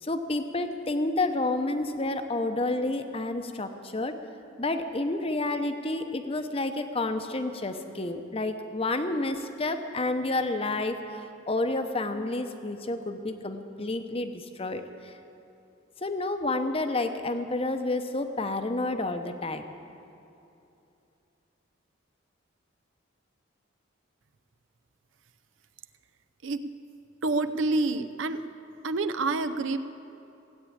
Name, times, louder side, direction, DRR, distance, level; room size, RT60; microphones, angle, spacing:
voice 1, 0.0-4.1 4.6-15.1 16.0-19.7, left 2 dB, 30° left, 7 dB, 0.8 m, -30 dB
voice 2, 27.2-28.5 28.8-29.8, right 3 dB, 70° right, 11 dB, 0.6 m, -27 dB
17.0 x 8.5 x 8.6 m, 2.7 s
head